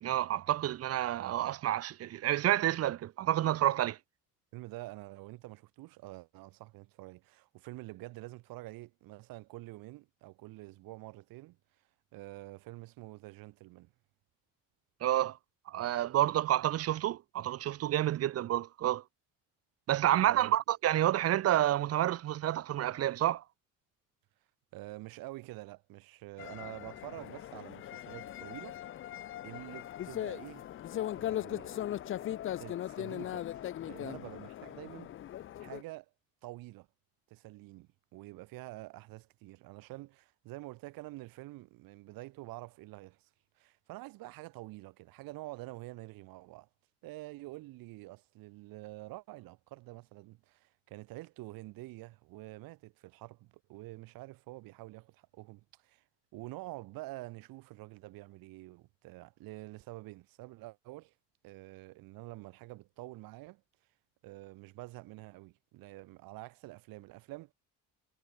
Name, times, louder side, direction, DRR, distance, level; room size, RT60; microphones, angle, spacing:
voice 1, 0.0-4.0 15.0-15.4 15.7-19.0 19.9-23.4, right 13 dB, 45° right, 0.7 m, -29 dB
voice 2, 4.5-11.6 12.1-13.9 20.0-20.5 24.7-29.1 29.4-30.6 31.1-31.8 32.2-33.5 33.8-35.1 35.6-36.1 36.4-36.9 37.3-43.3 43.6-46.7 47.0-56.0 56.3-61.1 61.4-63.6 64.2-67.5, right 20 dB, 80° right, 3.0 m, -47 dB
sound 1, 26.4-35.8, left 12 dB, 40° left, 0.5 m, -39 dB
cardioid pair, 115°, 34 cm